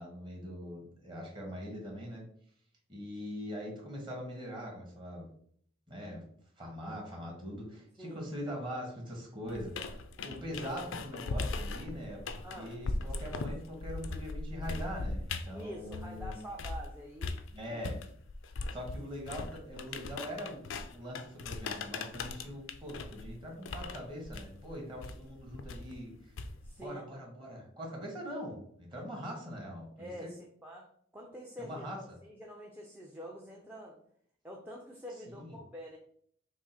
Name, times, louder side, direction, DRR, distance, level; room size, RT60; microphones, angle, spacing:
voice 1, 0.0-2.2 2.9-5.3 5.9-6.2 6.6-16.4 17.5-18.0 18.7-20.6 20.9-26.3 26.8-30.3 31.6-32.0 35.3-35.6, equal, 25° right, -2 dB, 1.5 m, -42 dB
sound 1, 9.5-16.9 17.2-26.8, left 3 dB, 85° left, 0.5 m, -39 dB
voice 2, 12.4-12.8 15.5-17.4 17.7-17.8 26.6-27.1 30.0-34.0 34.4-36.0, equal, 10° right, -2 dB, 0.6 m, -46 dB
5.9 x 2.0 x 4.3 m, 0.63 s
head